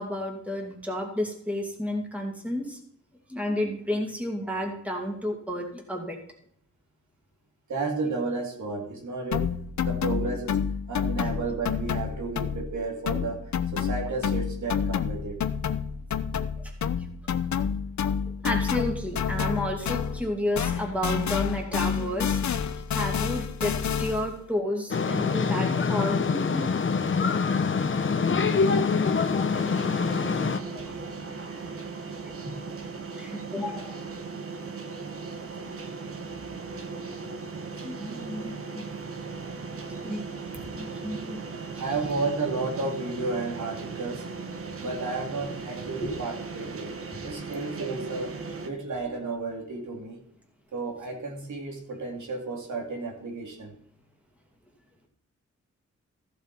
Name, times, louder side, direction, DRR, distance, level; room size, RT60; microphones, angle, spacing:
voice 1, 0.0-2.8 3.3-6.2 10.2-10.3 16.6-16.7 18.4-22.6 22.9-26.8 30.6-31.0 32.2-32.4 33.1-33.9 35.8-35.9 37.8-39.1 40.0-40.2 40.5-41.4 46.0-46.1, left 1 dB, 5° right, 1 dB, 2.5 m, -32 dB
voice 2, 7.7-9.6 9.8-10.6 10.9-15.4 30.3-30.5 31.5-31.6 32.4-32.5 41.8-44.2 44.8-46.9 47.2-50.2 50.7-53.7, right 3 dB, 80° right, 0 dB, 2.6 m, -32 dB
sound 1, 9.3-12.8 13.1-20.3 20.6-24.3, left 7 dB, 75° left, 0.8 m, -29 dB
sound 2, 24.9-30.6, left 5 dB, 45° left, 0.9 m, -25 dB
sound 3, 29.5-48.7, right 4 dB, 50° right, 1.3 m, -38 dB
14.5 x 7.0 x 4.5 m, 0.68 s
wide cardioid pair, 120°, 29 cm